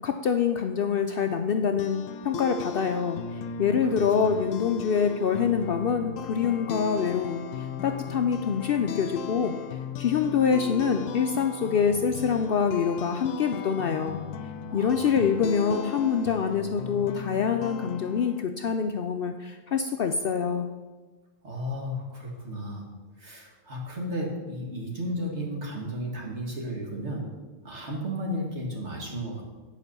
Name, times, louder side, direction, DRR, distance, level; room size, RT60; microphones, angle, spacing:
voice 1, 0.0-9.5 10.0-14.2 14.7-20.7, left 6 dB, 60° left, 6 dB, 0.6 m, -25 dB
sound 1, 1.5-18.4, left 7 dB, 80° left, 1.0 m, -37 dB
voice 2, 3.9-4.3 14.7-15.3 21.4-27.4 27.6-29.4, equal, 60° right, -1 dB, 2.1 m, -34 dB
9.5 x 5.0 x 6.7 m, 1.3 s
omnidirectional pair, 1.3 m